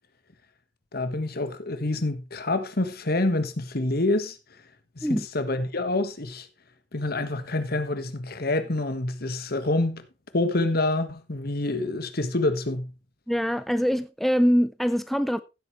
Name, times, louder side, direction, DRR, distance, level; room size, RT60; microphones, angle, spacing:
voice 1, 0.9-4.4 5.0-6.5 6.9-10.0 10.3-12.9, left 2 dB, 55° left, 1.5 m, -27 dB
voice 2, 13.3-15.4, equal, ahead, 0.4 m, -23 dB
15.5 x 8.1 x 3.2 m
head